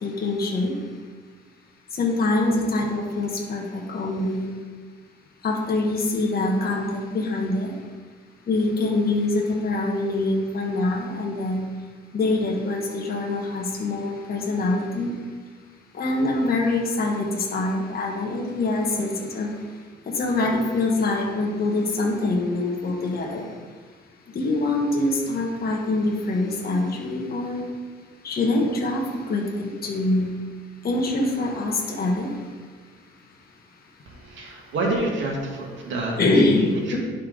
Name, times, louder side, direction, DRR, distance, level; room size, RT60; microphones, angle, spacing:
voice 1, 0.0-0.7 2.0-4.5 5.4-7.7 8.5-11.6 12.1-15.1 15.9-19.5 20.1-23.5 24.3-27.7 28.2-30.3 30.8-32.3 36.2-37.0, left 2 dB, 50° left, -1 dB, 1.7 m, -24 dB
voice 2, 34.1-37.0, right 2 dB, 70° right, -2 dB, 2.3 m, -28 dB
10.5 x 5.6 x 4.0 m, 1.5 s
cardioid pair, 90°, 20 cm